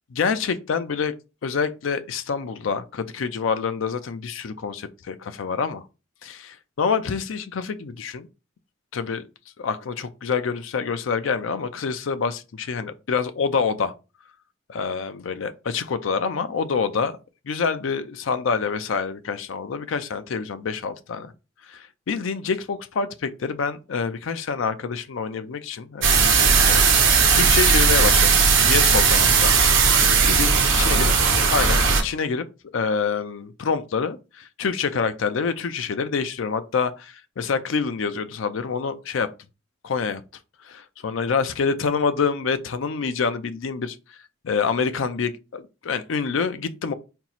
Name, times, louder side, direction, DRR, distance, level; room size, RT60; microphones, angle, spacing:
voice 1, 0.1-1.1 1.4-5.8 6.2-8.3 8.9-9.3 9.6-13.9 14.7-17.1 17.5-21.3 21.7-28.4 28.6-29.6 30.0-31.1 31.5-32.5 32.7-39.3 39.8-40.2 40.6-44.0 44.4-46.9, left 5 dB, 85° left, 0.5 m, -27 dB
sound 1, 26.0-32.0, right 5 dB, 80° right, 1.0 m, -17 dB
4.4 x 2.0 x 3.9 m
head